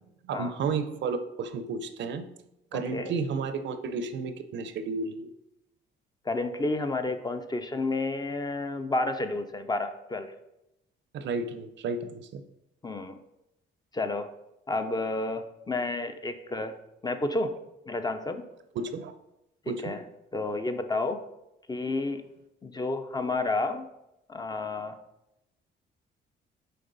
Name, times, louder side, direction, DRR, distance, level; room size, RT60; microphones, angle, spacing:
voice 1, 0.2-2.2 2.7-5.3 11.1-12.4 18.7-19.1 19.7-19.9, right 4 dB, 65° right, 10 dB, 0.6 m, -32 dB
voice 2, 2.7-3.1 6.2-10.3 12.8-13.2 13.9-14.3 14.7-16.7 17.0-17.5 17.9-18.4 19.7-20.0 20.3-21.2 21.7-22.2 22.6-23.9 24.3-25.0, left 2 dB, 20° left, 8 dB, 0.6 m, -30 dB
6.7 x 4.2 x 4.0 m, 0.88 s
cardioid pair, 90°, 20 cm